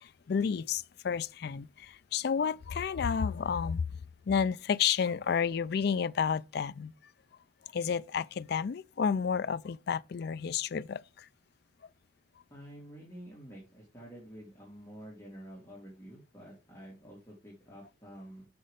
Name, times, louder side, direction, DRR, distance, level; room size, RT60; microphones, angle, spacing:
voice 1, 0.0-3.8 4.3-6.9 7.7-11.3, left 6 dB, 55° left, 0.4 m, -31 dB
voice 2, 12.5-18.5, equal, 15° left, 2.9 m, -49 dB
6.3 x 6.0 x 5.2 m
head